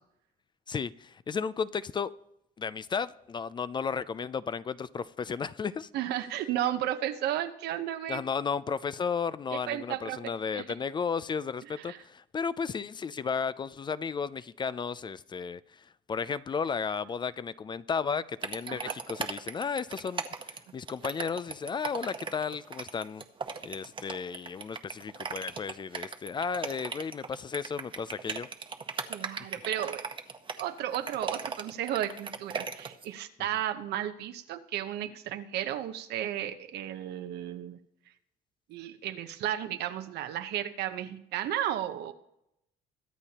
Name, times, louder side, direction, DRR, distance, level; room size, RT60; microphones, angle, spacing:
voice 1, 0.7-2.1 2.6-5.9 8.1-23.2 23.6-28.5, left 6 dB, 25° left, 0.4 m, -34 dB
voice 2, 5.9-8.2 9.5-10.7 11.8-12.0 18.7-19.0 29.1-30.1 30.6-37.8 38.7-42.1, right 11 dB, 75° right, 0.9 m, -34 dB
sound 1, 18.4-33.1, right 5 dB, 30° right, 0.9 m, -37 dB
22.5 x 8.2 x 2.9 m
cardioid pair, 110°, 17 cm